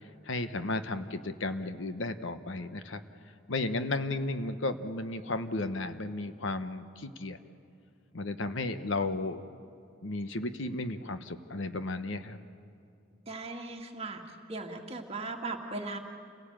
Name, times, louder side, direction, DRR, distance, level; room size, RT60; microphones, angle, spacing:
voice 1, 0.3-3.0 3.5-7.4 8.1-9.4 10.0-12.4, left 2 dB, 60° left, 10 dB, 1.0 m, -34 dB
voice 2, 13.3-14.2 14.5-16.0, right 3 dB, 30° right, 2 dB, 2.0 m, -38 dB
28.5 x 18.0 x 8.9 m, 2.5 s
head